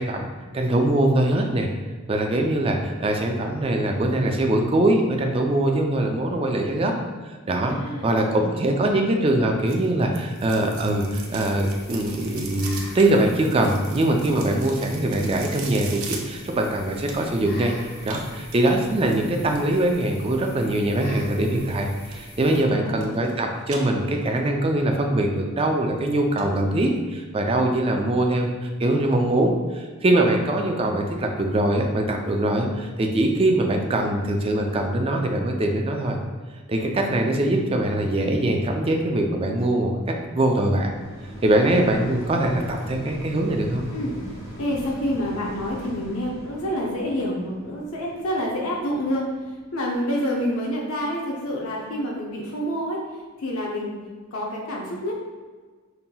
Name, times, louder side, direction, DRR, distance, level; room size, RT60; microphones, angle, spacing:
voice 1, 0.0-1.7 2.1-6.9 7.5-7.8 8.0-17.7 18.0-36.2 36.7-40.0 40.3-40.9 41.4-43.8, right 1 dB, 25° right, 2 dB, 0.4 m, -22 dB
voice 2, 7.5-8.8 22.4-23.2 43.9-44.2 44.6-54.0 54.3-55.2, equal, 70° left, -2 dB, 0.6 m, -28 dB
sound 1, 9.7-17.5 18.0-19.8 21.7-22.2 22.5-23.3 23.6-24.5 24.9-25.0 25.6-25.7 26.0-26.1 26.4-26.5 26.8-26.9, right 5 dB, 70° right, 0.6 m, -40 dB
sound 2, 10.3-22.6, left 1 dB, 45° left, 0.9 m, -44 dB
sound 3, 39.6-50.9 51.5-51.6, right 1 dB, 15° left, 0.9 m, -42 dB
5.4 x 2.8 x 2.2 m, 1.4 s
head